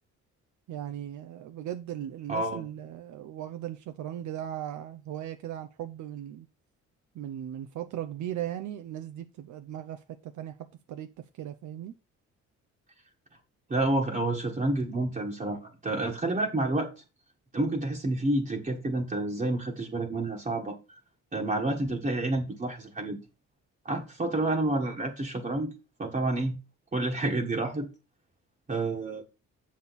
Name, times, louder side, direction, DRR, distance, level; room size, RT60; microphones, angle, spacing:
voice 1, 0.7-6.5 7.1-10.6 10.9-11.1 11.3-11.9, right 11 dB, 75° right, 0.7 m, -38 dB
voice 2, 2.3-2.6 13.7-16.9 17.5-20.8 21.3-23.2 23.8-25.7 26.0-26.6 26.9-27.9 28.7-29.2, right 2 dB, 25° right, 1.4 m, -29 dB
7.1 x 6.4 x 4.1 m
cardioid pair, 90°, 30 cm